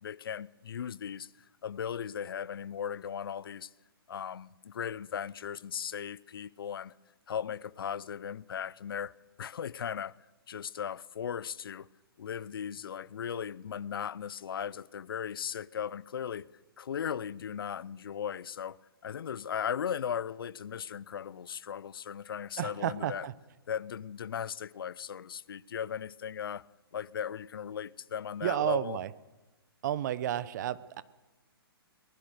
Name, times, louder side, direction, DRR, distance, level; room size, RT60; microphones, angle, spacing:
voice 1, 0.0-1.3 1.6-3.7 4.1-6.9 7.3-10.2 10.5-11.9 12.2-16.5 16.8-23.3 23.7-26.7 26.9-29.0, left 8 dB, 65° left, 0.7 m, -37 dB
voice 2, 22.6-23.3 28.4-29.1 29.8-31.0, right 12 dB, 45° right, 1.0 m, -31 dB
23.0 x 19.5 x 6.6 m
figure-of-eight pair, 130°, 13 cm